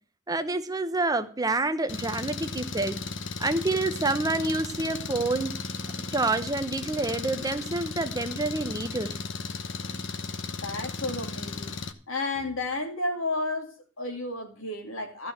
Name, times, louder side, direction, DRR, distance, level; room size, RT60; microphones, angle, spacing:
voice 1, 0.3-3.0 3.4-5.5 6.1-9.2, right 2 dB, 20° right, 0.8 m, -28 dB
Engine, 1.9-11.9, left 4 dB, 60° left, 1.1 m, -35 dB
voice 2, 10.5-11.8 12.1-15.3, left 2 dB, 80° left, 2.7 m, -32 dB
14.0 x 6.4 x 7.8 m
head